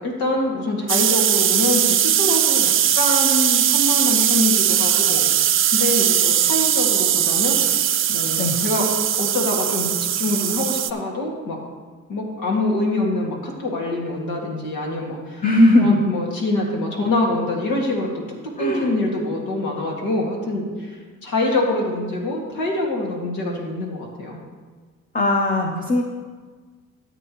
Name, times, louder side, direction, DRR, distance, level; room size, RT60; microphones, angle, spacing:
voice 1, 0.0-5.3 5.7-7.6 8.1-8.9 9.2-9.9 10.2-11.6 12.1-15.4 15.8-18.1 18.6-24.4, left 2 dB, 85° left, -1 dB, 2.1 m, -25 dB
sound 1, 0.9-10.9, right 10 dB, 45° right, 0.5 m, -19 dB
voice 2, 15.4-16.0 18.6-18.9 25.1-26.0, left 1 dB, 25° left, 2 dB, 0.9 m, -18 dB
13.0 x 8.1 x 3.1 m, 1.4 s
cardioid pair, 90°, 30 cm